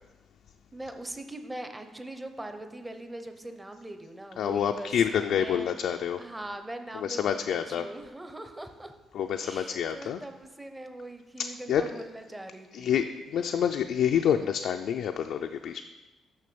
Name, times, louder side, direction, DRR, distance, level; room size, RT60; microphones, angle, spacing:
voice 1, 0.7-5.7 6.2-8.9 9.4-13.0 13.5-13.6, right 1 dB, 10° right, 7 dB, 0.7 m, -41 dB
voice 2, 4.4-6.2 6.9-7.8 9.1-10.2 11.7-11.8 12.7-13.0 13.3-15.8, left 8 dB, 70° left, 5 dB, 0.4 m, -27 dB
6.5 x 6.2 x 6.8 m, 1.1 s
cardioid pair, 145°, 0 cm